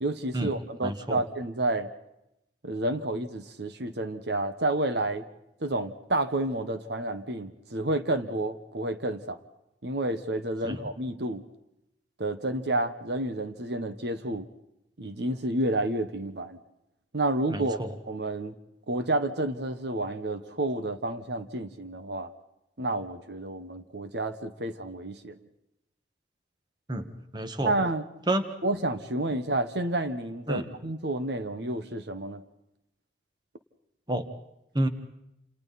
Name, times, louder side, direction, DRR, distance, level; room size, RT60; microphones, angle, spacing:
voice 1, 0.0-1.9 2.6-5.2 5.6-9.4 9.8-11.4 12.2-14.5 15.0-16.6 17.1-17.8 18.1-18.5 18.9-22.3 22.8-25.4 27.6-28.0 28.6-32.4, right 2 dB, 65° right, 9 dB, 1.3 m, -30 dB
voice 2, 0.8-1.2 10.6-10.8 17.5-17.9 26.9-27.7 28.3-28.5 30.5-30.7 34.1-34.2 34.7-34.9, right 1 dB, 25° right, 8 dB, 1.6 m, -29 dB
29.0 x 28.0 x 4.2 m, 0.86 s
head